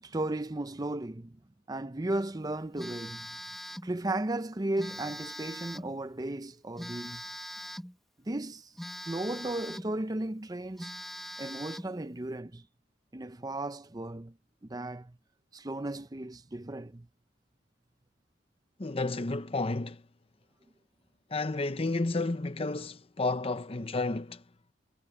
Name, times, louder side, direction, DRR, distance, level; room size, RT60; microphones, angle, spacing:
voice 1, 0.0-1.4 1.7-3.4 3.8-7.2 8.3-8.7 9.1-10.9 11.4-12.7 13.1-14.3 14.6-15.2 15.5-17.1, right 2 dB, 20° right, 0.6 m, -35 dB
Telephone, 2.8-3.9 4.8-6.0 6.8-8.0 8.8-10.0 10.4-10.5 10.8-12.0, equal, ahead, 1.6 m, -42 dB
voice 2, 18.8-20.0 21.3-24.4, left 2 dB, 30° left, 0.8 m, -31 dB
head